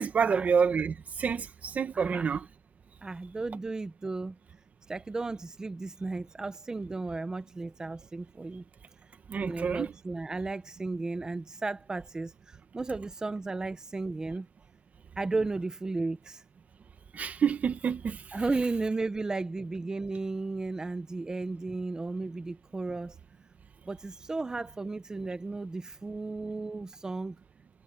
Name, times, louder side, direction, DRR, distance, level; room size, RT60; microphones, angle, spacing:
voice 1, 0.0-2.4 9.3-9.9 17.1-18.2, right 6 dB, 75° right, 1.1 m, -28 dB
voice 2, 1.9-2.3 3.0-4.4 4.9-8.6 9.4-14.5 15.2-16.4 18.3-23.1 23.9-27.4, right 3 dB, 25° right, 0.8 m, -34 dB
wide cardioid pair, 175°, 3 cm